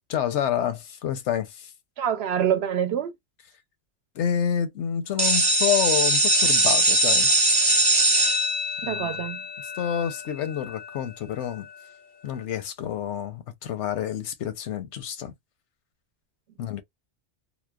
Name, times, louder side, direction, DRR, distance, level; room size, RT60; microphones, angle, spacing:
voice 1, 0.1-1.7 4.1-7.3 8.8-9.1 9.6-11.7 12.2-15.3 16.6-16.8, left 9 dB, 85° left, 0.9 m, -28 dB
voice 2, 2.0-3.1 8.8-9.4, right 9 dB, 70° right, 0.8 m, -26 dB
sound 1, 5.2-10.8, right 1 dB, 25° right, 0.6 m, -22 dB
2.8 x 2.0 x 2.2 m
omnidirectional pair, 1.2 m